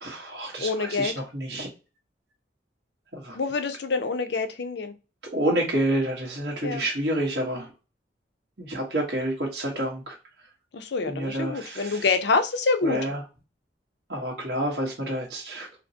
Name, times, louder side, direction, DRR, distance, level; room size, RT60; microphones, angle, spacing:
voice 1, 0.0-1.7 3.1-3.4 5.3-7.7 8.6-10.2 11.0-12.0 12.8-13.2 14.1-15.8, right 1 dB, 60° right, -2 dB, 1.2 m, -28 dB
voice 2, 0.6-1.1 3.3-4.9 6.6-6.8 10.7-13.0, left 4 dB, 65° left, 9 dB, 0.5 m, -26 dB
4.2 x 2.0 x 2.7 m, 0.31 s
head